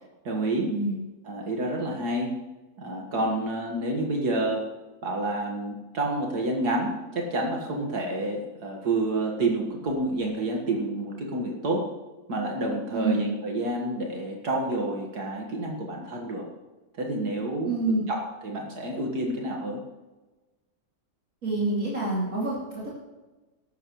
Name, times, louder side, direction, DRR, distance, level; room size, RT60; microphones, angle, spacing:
voice 1, 0.2-0.8 1.3-2.4 2.8-4.7 5.0-11.9 12.3-16.5 16.9-17.8 18.1-19.8, right 2 dB, 75° right, 0 dB, 2.2 m, -29 dB
voice 2, 12.9-13.3 17.6-18.0 21.4-22.9, right 2 dB, 55° right, -6 dB, 3.1 m, -27 dB
14.0 x 12.0 x 3.1 m, 1.2 s
omnidirectional pair, 1.7 m